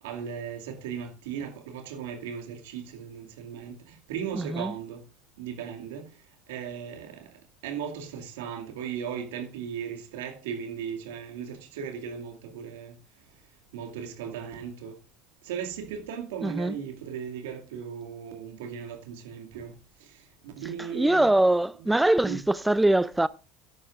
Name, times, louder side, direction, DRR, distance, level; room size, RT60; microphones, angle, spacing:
voice 1, 0.0-5.0 5.4-13.0 13.7-15.0 15.4-21.3 21.8-21.9 22.2-22.4, right 8 dB, 75° right, 2.3 m, -37 dB
voice 2, 4.4-4.7 16.4-16.7 20.8-23.3, right 1 dB, 10° right, 0.4 m, -23 dB
14.0 x 10.5 x 2.5 m
hypercardioid pair, 75°, 0 cm